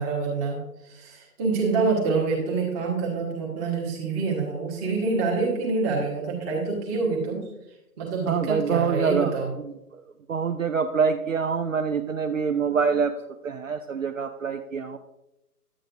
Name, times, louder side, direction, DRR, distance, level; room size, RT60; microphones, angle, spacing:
voice 1, 0.0-7.5 8.0-9.5, right 4 dB, 10° right, -2 dB, 1.1 m, -26 dB
voice 2, 8.3-10.0 10.3-13.2 13.4-15.0, right 6 dB, 55° right, 8 dB, 0.5 m, -26 dB
9.9 x 8.7 x 2.5 m, 0.92 s
figure-of-eight pair, 135°, 48 cm